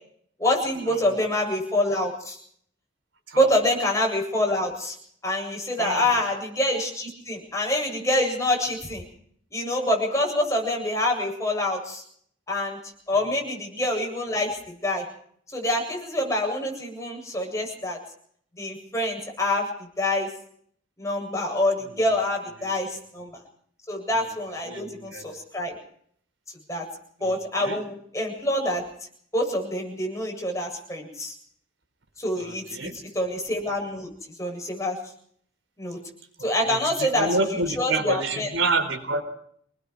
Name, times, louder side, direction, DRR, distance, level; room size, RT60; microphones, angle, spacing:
voice 1, 0.4-2.4 3.3-4.9 5.2-9.0 9.5-12.0 12.5-12.8 13.1-15.1 15.5-18.0 18.6-19.7 20.0-20.3 21.0-23.3 23.9-25.7 26.7-26.8 27.2-28.8 29.3-31.3 32.2-34.1 34.4-35.0 35.8-36.0 36.4-37.3 37.8-38.5, left 1 dB, 15° left, 1 dB, 7.9 m, -26 dB
voice 2, 5.8-6.1 13.1-13.2 22.6-22.7 24.7-25.2 27.2-27.3 27.6-27.8 32.4-33.0 36.4-39.2, right 2 dB, 80° right, 7 dB, 4.2 m, -28 dB
27.0 x 20.0 x 4.8 m, 0.62 s
head